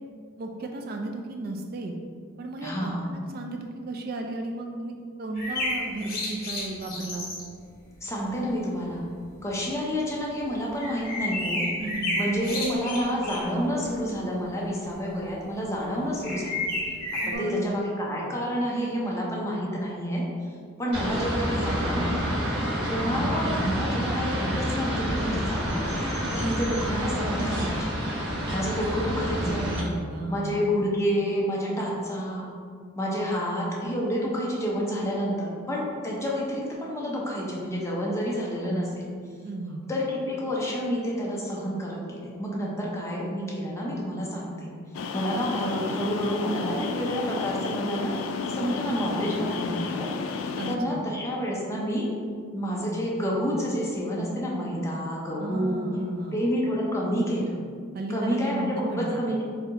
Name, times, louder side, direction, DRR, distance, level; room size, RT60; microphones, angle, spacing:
voice 1, 0.4-2.0 2.4-7.3 11.8-12.2 17.2-17.7 23.0-23.3 29.4-30.7 39.4-39.8 50.6-51.0 55.4-56.4 57.9-59.2, right 2 dB, 45° right, 2 dB, 0.3 m, -34 dB
voice 2, 2.6-3.0 8.0-9.0 9.4-11.7 12.2-16.6 17.2-20.2 20.8-22.4 22.9-27.9 28.5-29.8 30.3-32.5 33.0-38.9 39.9-44.7 45.1-48.1 48.5-52.1 52.5-55.8 56.3-57.5 58.1-59.4, equal, 15° left, -4 dB, 0.7 m, -29 dB
sound 1, 5.3-7.4 8.9-9.0 9.3-9.4 10.8-13.6 13.9-14.2 14.9-15.0 16.2-17.3, left 2 dB, 50° left, 1.2 m, -31 dB
sound 2, 20.9-29.8, equal, 60° right, 1.2 m, -28 dB
sound 3, 44.9-50.8, left 4 dB, 90° left, 0.3 m, -32 dB
4.0 x 2.8 x 3.9 m, 2.1 s
head